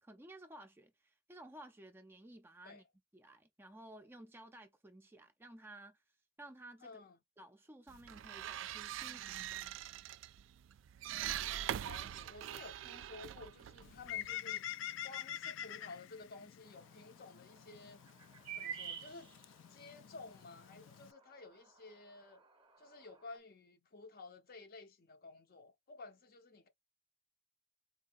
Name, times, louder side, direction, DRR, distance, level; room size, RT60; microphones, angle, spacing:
voice 1, 0.0-2.8 3.1-6.0 6.4-7.0 7.4-9.6, right 1 dB, 10° right, 0.4 m, -55 dB
voice 2, 6.8-7.2 11.8-14.7 15.0-18.0 18.6-19.3 19.7-22.4 22.8-26.7, left 3 dB, 50° left, 0.7 m, -53 dB
sound 1, 7.9-14.4, right 11 dB, 80° right, 0.3 m, -43 dB
Bird, 13.8-21.1, left 11 dB, 80° left, 0.3 m, -47 dB
sound 2, 16.7-23.4, right 8 dB, 30° right, 0.8 m, -52 dB
3.9 x 2.6 x 2.5 m
head